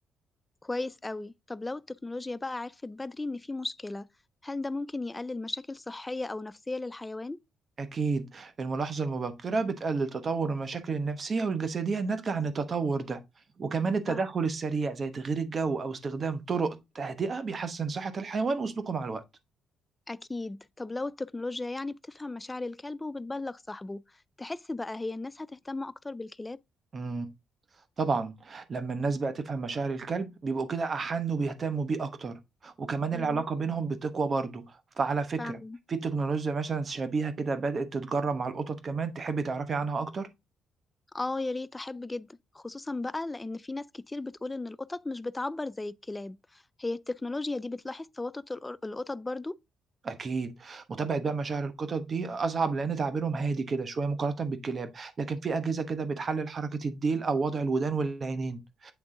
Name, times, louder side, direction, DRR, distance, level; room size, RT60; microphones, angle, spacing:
voice 1, 0.6-4.1 4.4-7.4 14.1-14.2 20.1-24.0 24.4-26.6 33.1-33.4 35.4-35.8 41.1-42.3 42.5-49.6, left 2 dB, 15° left, 0.3 m, -36 dB
voice 2, 7.8-13.2 13.6-19.2 26.9-27.3 28.0-34.6 35.0-35.6 35.9-40.3 50.0-58.9, right 4 dB, 40° right, 1.0 m, -30 dB
8.0 x 3.4 x 3.7 m
cardioid pair, 90°, 0 cm